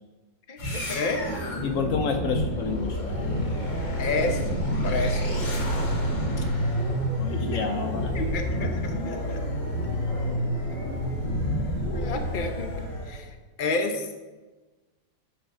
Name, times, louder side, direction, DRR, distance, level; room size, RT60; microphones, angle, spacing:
voice 1, 0.5-1.2 4.0-4.4 4.8-5.3 7.3-7.7 8.1-9.4 11.9-12.7 13.0-14.1, left 3 dB, 40° left, 5 dB, 0.7 m, -30 dB
sound 1, 0.6-13.2, equal, 70° left, 3.3 m, -28 dB
voice 2, 1.6-3.0 7.2-8.2, left 5 dB, 85° left, 6 dB, 0.7 m, -29 dB
11.0 x 5.2 x 6.1 m, 1.2 s
omnidirectional pair, 2.1 m